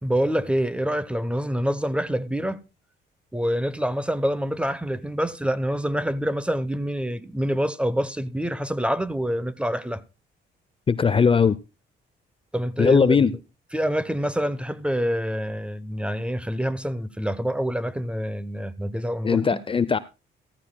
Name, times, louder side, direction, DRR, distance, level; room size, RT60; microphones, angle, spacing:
voice 1, 0.0-2.6 3.3-10.0 12.5-13.3 13.7-19.4, equal, 5° right, 0.8 m, -26 dB
voice 2, 10.9-11.5 12.8-13.3 19.2-20.0, left 6 dB, 25° left, 0.5 m, -19 dB
14.5 x 14.5 x 2.2 m
cardioid pair, 90°, 20 cm